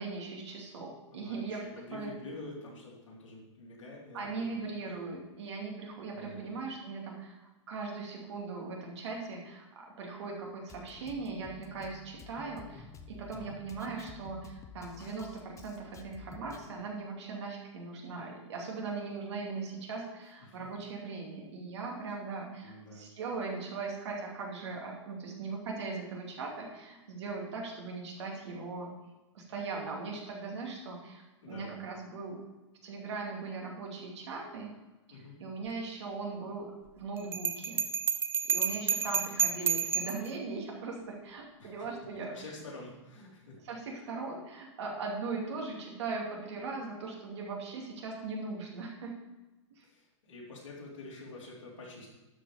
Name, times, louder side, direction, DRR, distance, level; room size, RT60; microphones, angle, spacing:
voice 1, 0.0-1.6 1.9-2.1 4.1-28.9 29.3-32.4 32.8-34.7 35.1-37.8 38.5-42.3 43.6-49.1 49.7-49.8, right 4 dB, 60° right, -1 dB, 2.6 m, -39 dB
voice 2, 1.1-4.5 6.1-6.6 20.4-20.6 22.6-23.1 31.4-31.7 35.1-35.4 41.6-41.9 42.3-43.6 49.8-52.1, left 2 dB, 75° left, -4 dB, 3.6 m, -47 dB
Drum kit, 10.7-16.7, left 5 dB, 20° left, 0.8 m, -51 dB
Bell, 37.3-40.3, right 7 dB, 15° right, 0.5 m, -30 dB
12.5 x 5.3 x 5.0 m, 1.1 s
hypercardioid pair, 110°, 16 cm